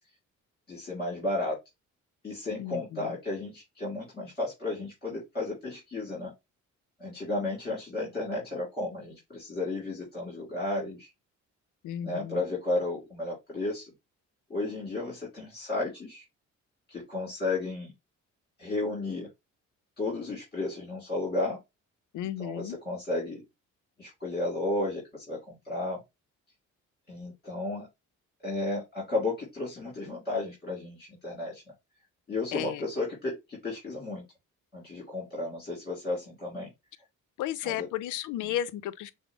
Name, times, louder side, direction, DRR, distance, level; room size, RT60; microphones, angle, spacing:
voice 1, 0.7-1.6 2.2-6.3 7.0-11.1 12.0-13.9 14.5-16.2 16.9-17.9 18.6-19.3 20.0-21.6 22.4-23.4 24.0-26.0 27.1-27.9 28.4-31.6 32.3-34.2 34.7-36.7 37.6-37.9, left 2 dB, 30° left, 2.7 m, -33 dB
voice 2, 2.6-3.1 11.8-12.4 22.1-22.8 32.5-32.8 37.4-39.1, left 11 dB, 85° left, 0.5 m, -34 dB
6.1 x 2.1 x 3.0 m
cardioid pair, 90°, 30 cm